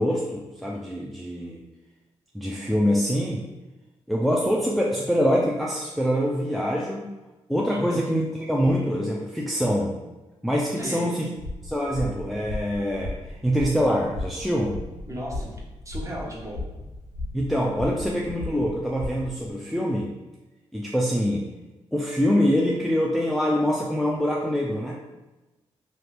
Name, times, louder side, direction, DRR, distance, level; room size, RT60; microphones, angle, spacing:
voice 1, 0.0-1.6 2.3-3.5 4.1-7.0 7.5-10.0 10.4-11.3 11.6-13.1 13.4-14.8 17.3-20.1 20.7-21.5 21.9-25.0, equal, ahead, -3 dB, 0.4 m, -24 dB
voice 2, 7.7-8.0 10.8-11.1 15.1-15.5 15.8-16.6, equal, 25° right, -3 dB, 1.0 m, -34 dB
sound 1, 11.4-19.5, left 2 dB, 85° left, 0.6 m, -36 dB
2.7 x 2.5 x 3.4 m, 1.1 s
supercardioid pair, 55°, 11 cm